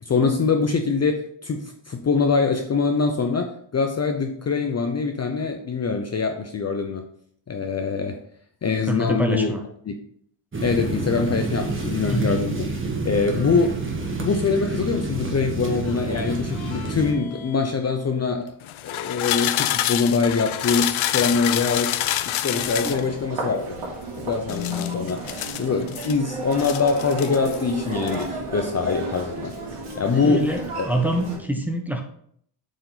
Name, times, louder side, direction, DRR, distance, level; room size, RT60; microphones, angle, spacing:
voice 1, 0.0-7.1 7.5-8.2 8.6-9.5 9.8-9.9 10.6-12.7 13.0-13.8 14.2-18.5 18.8-21.9 22.2-23.8 24.2-25.2 25.5-29.5 30.0-30.9, left 4 dB, 30° left, 4 dB, 0.6 m, -23 dB
voice 2, 8.9-9.6 12.1-12.4 22.8-22.9 30.2-30.6 30.8-32.0, right 1 dB, 5° right, 2 dB, 0.9 m, -25 dB
sound 1, 10.5-17.1, right 3 dB, 25° right, 1.4 m, -28 dB
sound 2, 15.9-17.8 18.6-23.0 24.5-26.1 26.5-27.6 27.9-28.2, left 13 dB, 70° left, 0.6 m, -28 dB
Human voice, 22.5-31.4, right 1 dB, 80° right, 3.3 m, -32 dB
7.7 x 5.1 x 4.0 m, 0.65 s
wide cardioid pair, 140°, 50 cm